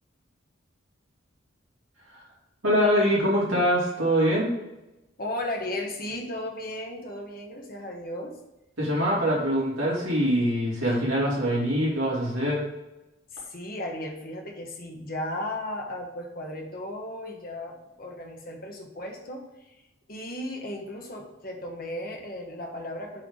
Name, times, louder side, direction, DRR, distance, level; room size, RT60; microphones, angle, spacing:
voice 1, 2.6-4.5 8.8-12.6, equal, 80° right, -6 dB, 2.7 m, -24 dB
voice 2, 5.2-8.3 10.8-11.1 13.3-19.5 20.1-23.2, left 1 dB, 45° left, 1 dB, 1.3 m, -35 dB
7.5 x 3.6 x 6.4 m, 0.95 s
head